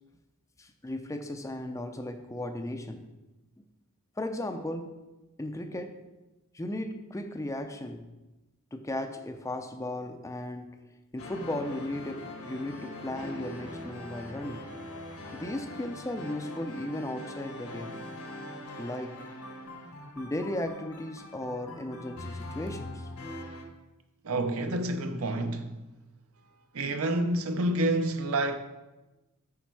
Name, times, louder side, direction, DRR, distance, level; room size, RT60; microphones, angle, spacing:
voice 1, 0.6-3.0 4.2-5.0 5.4-6.0 6.5-8.1 8.7-10.8 11.1-14.7 15.3-18.0 18.8-19.2 20.2-23.1, left 1 dB, 15° left, 0.4 m, -36 dB
sound 1, 11.2-23.6, left 1 dB, 80° left, 1.5 m, -42 dB
voice 2, 24.2-25.7 26.7-28.6, right 1 dB, 70° right, 0.7 m, -28 dB
8.4 x 5.1 x 4.7 m
head